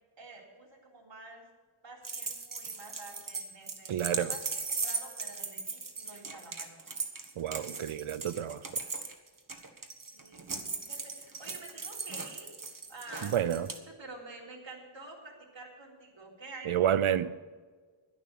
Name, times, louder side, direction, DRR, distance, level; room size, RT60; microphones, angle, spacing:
voice 1, 0.2-1.5 1.8-6.8 10.1-17.2, right 2 dB, 60° right, 3.6 m, -49 dB
sound 1, 2.0-13.8, right 4 dB, 40° right, 1.4 m, -38 dB
voice 2, 3.9-4.3 7.4-8.6 13.3-13.7 16.7-17.3, right 10 dB, 75° right, 0.8 m, -29 dB
11.5 x 11.0 x 6.7 m
wide cardioid pair, 80°, 50 cm